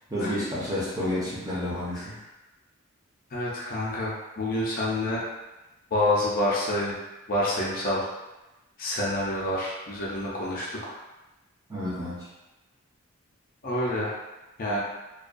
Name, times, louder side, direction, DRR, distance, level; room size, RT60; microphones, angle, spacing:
voice 1, 0.1-2.1 11.7-12.3, left 1 dB, 15° right, -7 dB, 0.6 m, -30 dB
voice 2, 3.3-5.2 5.9-7.0 7.3-8.1 8.8-11.0 13.6-14.2 14.6-14.8, left 1 dB, 40° left, -5 dB, 0.5 m, -27 dB
2.2 x 2.2 x 2.5 m, 1.0 s
head